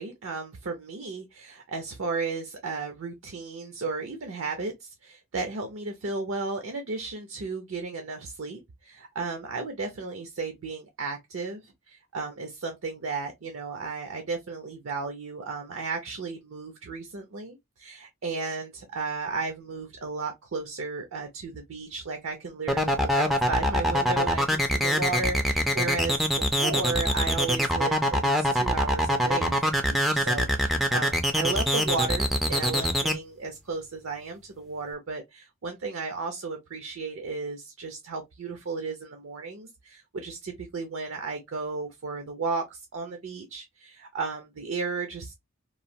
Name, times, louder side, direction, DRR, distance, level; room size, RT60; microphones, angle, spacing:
voice 1, 0.0-45.3, right 4 dB, 65° right, 0.5 m, -34 dB
sound 1, 22.7-33.1, equal, ahead, 0.3 m, -24 dB
3.1 x 2.2 x 2.6 m
head